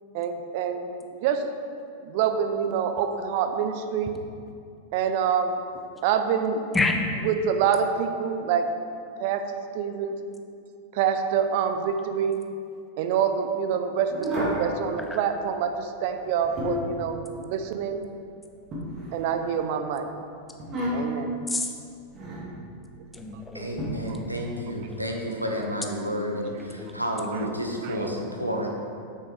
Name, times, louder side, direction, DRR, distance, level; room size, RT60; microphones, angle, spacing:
voice 1, 0.1-1.4 2.0-4.2 4.9-5.6 6.0-6.6 7.2-8.7 9.2-9.4 9.7-10.1 10.9-12.4 13.0-14.1 14.4-18.0 19.1-20.1 20.9-21.3 24.1-24.2 27.8-28.0, right 7 dB, 50° right, 7 dB, 0.5 m, -26 dB
voice 2, 6.7-7.1 15.0-15.2 21.5-21.7 23.1-25.0 26.5-27.5 27.9-28.3, left 3 dB, 10° left, 3 dB, 0.6 m, -31 dB
sound 1, 14.1-14.7 16.2-17.0 18.7-19.6 20.6-21.3 22.1-22.5 23.8-23.9, equal, 30° right, 1.7 m, -31 dB
voice 3, 23.5-28.7, equal, 90° right, 0 dB, 0.8 m, -30 dB
7.4 x 6.1 x 3.5 m, 2.4 s
figure-of-eight pair, 90°, 0 cm